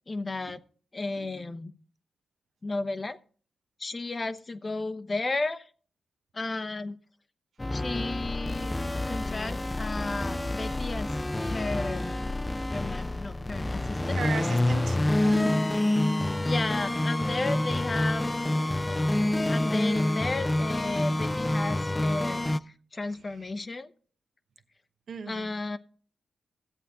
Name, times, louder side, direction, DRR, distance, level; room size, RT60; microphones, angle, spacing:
voice 1, 0.1-0.6 0.9-1.7 2.6-3.2 3.8-5.7 6.3-7.0 7.7-8.8 9.1-12.2 12.7-14.2 16.4-18.5 18.8-19.0 19.5-23.9 25.3-25.8, left 3 dB, 35° left, 11 dB, 0.8 m, -33 dB
sound 1, 7.6-22.6, left 1 dB, 20° left, 0.5 m, -28 dB
voice 2, 14.0-16.2 25.1-25.5, right 6 dB, 70° right, 7 dB, 1.0 m, -38 dB
13.5 x 8.1 x 3.7 m, 0.43 s
cardioid pair, 60°, 0 cm